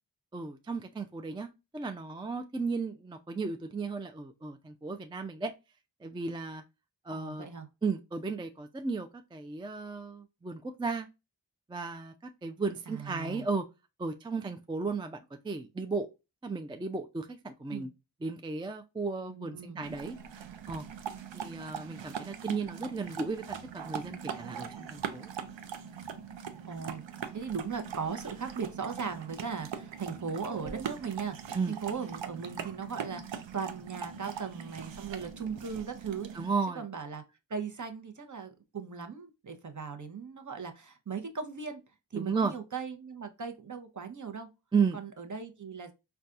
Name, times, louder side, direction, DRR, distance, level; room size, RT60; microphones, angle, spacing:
voice 1, 0.3-5.5 6.0-6.6 7.1-7.4 7.8-11.1 11.7-13.6 14.0-15.2 15.4-16.1 16.4-17.9 18.2-20.2 20.7-20.8 21.3-25.3 31.5-31.7 36.3-36.8 42.1-42.5 44.7-45.0, right 4 dB, 10° right, 0.3 m, -34 dB
voice 2, 7.1-7.7 12.9-13.5 17.7-17.9 19.3-19.9 26.7-36.5 36.8-37.2 37.5-41.8 42.1-44.5 44.9-45.9, right 5 dB, 45° right, 0.7 m, -38 dB
sound 1, 19.8-36.5, right 7 dB, 90° right, 0.5 m, -41 dB
4.0 x 2.3 x 2.3 m
wide cardioid pair, 55°, 43 cm